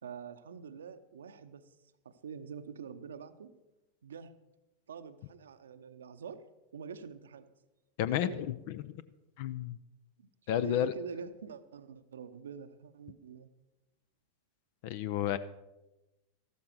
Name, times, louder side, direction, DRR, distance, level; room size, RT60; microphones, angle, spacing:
voice 1, 0.0-1.7 2.0-3.5 4.0-4.4 4.9-6.5 6.7-7.5 8.2-8.4 10.2-13.5, right 6 dB, 70° right, 12 dB, 0.7 m, -45 dB
voice 2, 8.0-8.3 8.8-8.9 9.4-9.7 10.5-10.9 14.8-15.4, left 11 dB, 50° left, 15 dB, 0.5 m, -30 dB
13.5 x 12.5 x 4.7 m, 1.0 s
figure-of-eight pair, 90°, 0 cm